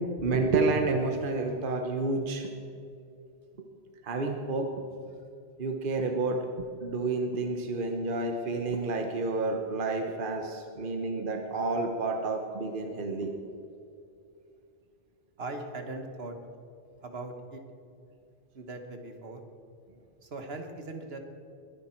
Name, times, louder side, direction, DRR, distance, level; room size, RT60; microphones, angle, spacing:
voice 1, 0.2-2.5 4.0-4.8 5.6-6.5 6.8-13.3, right 3 dB, 55° right, 4 dB, 1.2 m, -29 dB
voice 2, 15.4-16.4 17.0-17.6 18.5-19.4 20.2-21.2, right 2 dB, 75° right, 5 dB, 1.5 m, -39 dB
21.0 x 10.5 x 4.4 m, 2.5 s
omnidirectional pair, 1.1 m